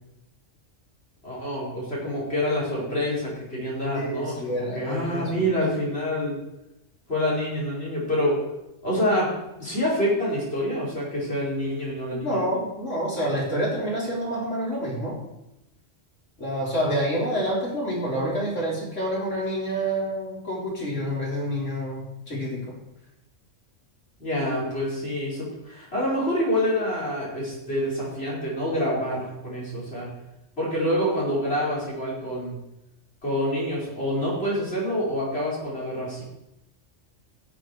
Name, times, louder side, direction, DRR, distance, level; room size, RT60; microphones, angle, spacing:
voice 1, 1.2-6.3 7.1-8.4 8.8-9.3 9.6-12.4 16.8-16.9 24.2-30.1 30.6-32.5 33.2-36.2, equal, 55° left, -6 dB, 5.1 m, -27 dB
voice 2, 3.9-5.3 12.1-15.2 16.4-22.8 24.4-24.6, equal, 75° left, -4 dB, 4.3 m, -28 dB
15.5 x 7.9 x 4.7 m, 0.91 s
omnidirectional pair, 1.3 m